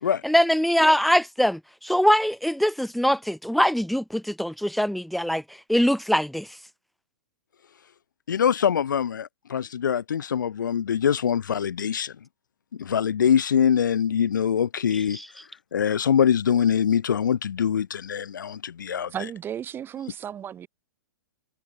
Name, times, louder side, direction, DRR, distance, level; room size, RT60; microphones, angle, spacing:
voice 1, 0.2-5.4 5.7-6.5 15.1-15.2, equal, ahead, 2.4 m, -22 dB
voice 2, 8.3-12.1 12.8-15.2 15.7-19.3, left 8 dB, 80° left, 5.9 m, -23 dB
voice 3, 19.1-20.7, right 9 dB, 20° right, 4.8 m, -34 dB
hypercardioid pair, 130°, 10 cm